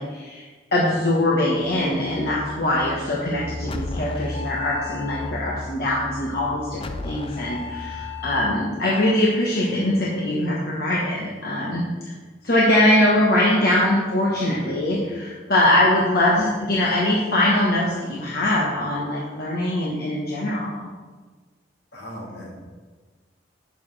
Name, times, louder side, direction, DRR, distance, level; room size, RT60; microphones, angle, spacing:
voice 1, 0.0-11.8 12.4-20.9, left 1 dB, 55° left, -5 dB, 1.2 m, -22 dB
sound 1, 1.6-8.5, left 2 dB, 30° left, 0.5 m, -34 dB
voice 2, 14.8-15.1 16.1-16.7 21.9-22.5, equal, 70° left, -3 dB, 2.1 m, -39 dB
9.7 x 6.8 x 3.3 m, 1.4 s
head